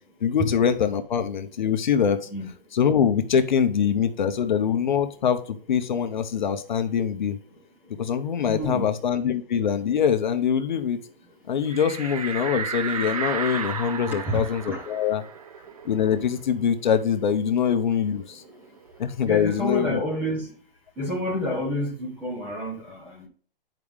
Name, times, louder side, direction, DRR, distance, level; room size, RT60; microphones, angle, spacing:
voice 1, 0.2-2.2 2.7-5.4 5.7-7.4 8.0-11.0 11.5-15.2 15.8-18.4 19.0-20.0, left 7 dB, 50° left, 0.9 m, -23 dB
voice 2, 8.5-8.9 14.1-14.8 19.3-20.5 21.0-23.3, left 1 dB, 5° right, 0.9 m, -29 dB
Whispy Shriek, 11.7-16.9 17.2-17.3 17.7-19.3, right 6 dB, 40° right, 0.6 m, -34 dB
9.2 x 4.9 x 3.5 m
hypercardioid pair, 170°, 30 cm